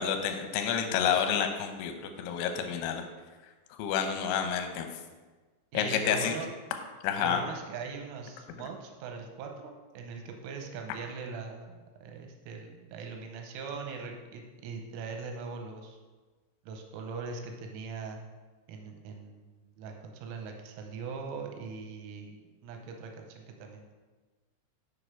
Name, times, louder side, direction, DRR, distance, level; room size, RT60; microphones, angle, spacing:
voice 1, 0.0-3.0 3.7-4.9 5.7-6.4 7.0-7.4, left 8 dB, 80° left, 6 dB, 2.9 m, -29 dB
voice 2, 5.7-6.5 7.2-16.0 16.6-18.2 18.7-23.9, right 5 dB, 85° right, 3 dB, 3.1 m, -41 dB
6.8 x 6.8 x 4.5 m, 1.3 s
omnidirectional pair, 5.9 m